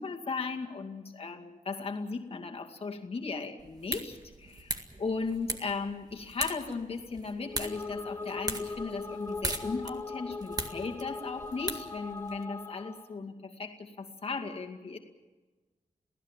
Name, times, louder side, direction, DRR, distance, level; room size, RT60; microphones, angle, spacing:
voice 1, 0.0-15.0, left 4 dB, 45° left, 2 dB, 2.4 m, -37 dB
sound 1, 3.6-12.4, right 2 dB, 25° right, 2.0 m, -40 dB
sound 2, 7.4-13.1, left 3 dB, 15° left, 1.3 m, -40 dB
28.5 x 17.0 x 7.4 m, 1.2 s
wide cardioid pair, 155°, 14 cm